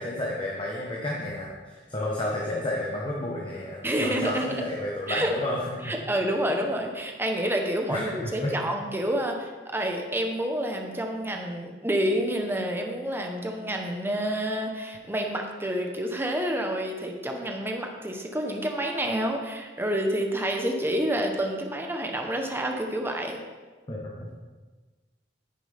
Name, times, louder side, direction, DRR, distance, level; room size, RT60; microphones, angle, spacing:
voice 1, 0.0-5.8 7.9-8.6 23.9-24.3, left 1 dB, 30° left, -3 dB, 1.2 m, -31 dB
voice 2, 3.8-4.6 5.1-5.3 5.8-23.4, right 1 dB, 15° right, 2 dB, 1.1 m, -28 dB
9.8 x 9.5 x 3.5 m, 1.3 s
head